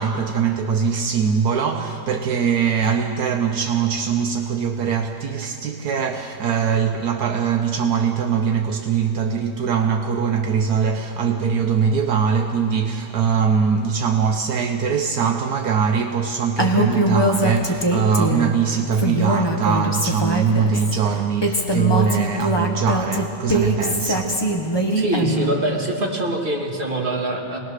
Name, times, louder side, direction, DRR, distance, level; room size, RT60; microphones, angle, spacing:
voice 1, 0.0-24.4, right 6 dB, 75° right, 1.4 m, -22 dB
Female speech woman speaking, 16.6-18.5 18.9-20.9 21.4-25.5, right 1 dB, 15° left, 1.6 m, -22 dB
voice 2, 24.9-27.6, right 1 dB, 30° right, 2.8 m, -24 dB
24.5 x 19.5 x 6.5 m
omnidirectional pair, 1.7 m